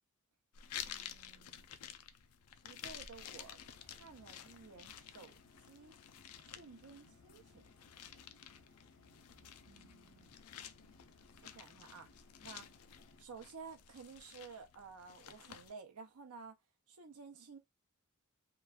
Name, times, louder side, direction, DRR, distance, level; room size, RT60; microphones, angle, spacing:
sound 1, 0.5-15.7, left 9 dB, 80° left, 0.4 m, -52 dB
voice 1, 0.8-1.7 2.6-5.3 5.7-5.9 6.6-7.6 9.4-10.4 11.4-12.1 12.4-12.7 13.2-16.6 16.9-17.6, right 5 dB, 90° right, 0.6 m, -53 dB
sound 2, 3.3-13.2, left 3 dB, 65° left, 0.9 m, -64 dB
3.0 x 2.3 x 2.4 m
head